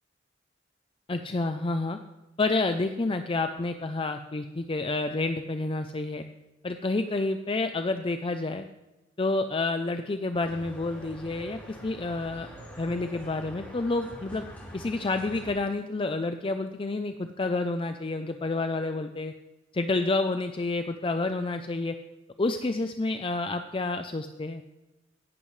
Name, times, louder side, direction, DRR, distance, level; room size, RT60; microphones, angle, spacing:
voice 1, 1.1-2.0 2.4-6.2 6.6-8.6 9.2-12.5 12.8-14.5 14.7-19.3 19.7-22.0 22.4-24.6, left 2 dB, 30° left, 7 dB, 0.5 m, -29 dB
sound 1, 10.3-15.5, equal, 10° left, 4.0 m, -45 dB
16.5 x 11.0 x 3.2 m, 1.0 s
head